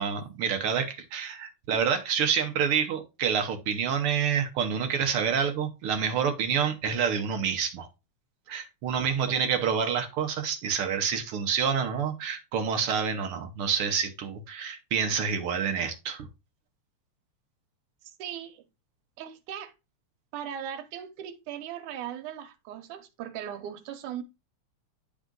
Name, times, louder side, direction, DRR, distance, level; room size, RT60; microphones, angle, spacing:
voice 1, 0.0-7.9 8.5-16.3, right 7 dB, 70° right, 1.4 m, -28 dB
voice 2, 18.2-18.6 19.2-19.7 20.3-24.2, right 9 dB, 90° right, 2.3 m, -38 dB
10.5 x 3.6 x 3.8 m
omnidirectional pair, 3.4 m